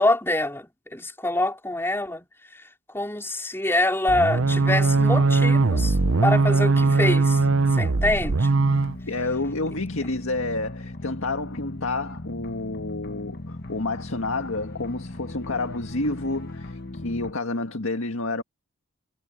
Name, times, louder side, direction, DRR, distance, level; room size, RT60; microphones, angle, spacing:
voice 1, 0.0-2.3 2.5-2.6 2.9-6.0 6.2-7.4 7.7-8.5, left 2 dB, 10° left, 3.9 m, -25 dB
sound 1, 4.1-9.0, right 3 dB, 75° right, 0.8 m, -20 dB
sound 2, 4.4-17.3, left 2 dB, 50° left, 1.5 m, -38 dB
voice 2, 9.1-18.4, left 2 dB, 90° left, 1.8 m, -29 dB
head